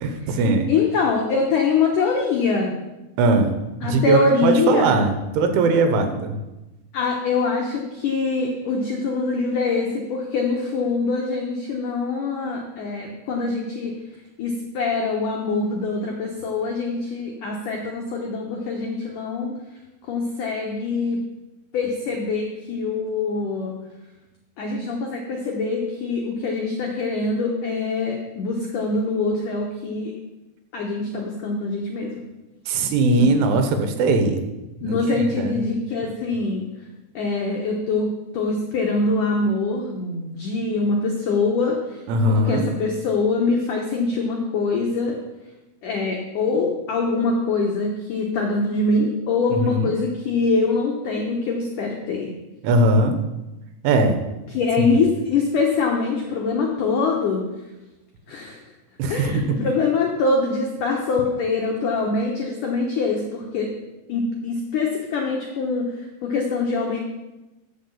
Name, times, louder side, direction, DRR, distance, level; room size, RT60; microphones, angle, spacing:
voice 1, 0.0-0.7 3.2-3.5 3.8-6.4 32.7-34.4 34.8-35.6 42.1-42.7 49.6-50.0 52.6-53.2 53.8-54.2 54.8-54.9 59.0-59.6, right 2 dB, 85° right, 6 dB, 3.5 m, -20 dB
voice 2, 0.7-2.7 3.8-4.9 6.9-13.9 14.4-19.5 20.0-21.2 21.7-23.8 24.6-30.1 30.7-32.2 33.2-33.4 34.8-36.7 37.1-38.1 38.3-42.0 42.3-45.2 45.8-52.3 54.5-57.4 58.3-58.6 59.1-63.7 64.1-67.0, left 3 dB, 85° left, 0 dB, 1.8 m, -24 dB
13.5 x 4.9 x 7.1 m, 1.0 s
omnidirectional pair, 5.5 m